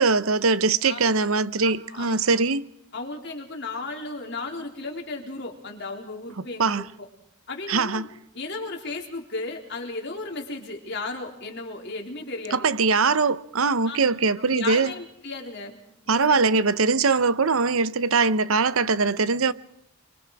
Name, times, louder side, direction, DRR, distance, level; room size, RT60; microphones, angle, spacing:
voice 1, 0.0-2.6 6.6-6.8 7.7-8.1 12.5-14.9 16.1-19.5, right 4 dB, 75° right, 0.9 m, -22 dB
voice 2, 1.6-2.4 2.9-7.1 7.5-8.1 8.3-12.7 13.9-14.0 14.4-15.8 16.1-16.4, left 3 dB, 55° left, 3.8 m, -35 dB
30.0 x 23.0 x 4.8 m
head